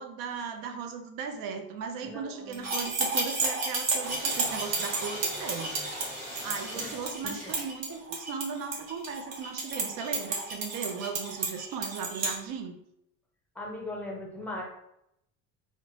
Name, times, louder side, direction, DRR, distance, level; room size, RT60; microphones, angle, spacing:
voice 1, 0.0-5.7 6.4-12.8, right 6 dB, 85° right, 5 dB, 0.5 m, -37 dB
voice 2, 2.0-2.7 6.7-6.9 13.6-14.6, left 1 dB, 5° left, -2 dB, 0.5 m, -39 dB
sound 1, 2.5-12.3, right 3 dB, 50° right, 0.7 m, -32 dB
sound 2, 4.0-8.5 9.0-12.0, equal, 20° right, 1.3 m, -42 dB
2.8 x 2.1 x 2.7 m, 0.80 s
cardioid pair, 150°, 33 cm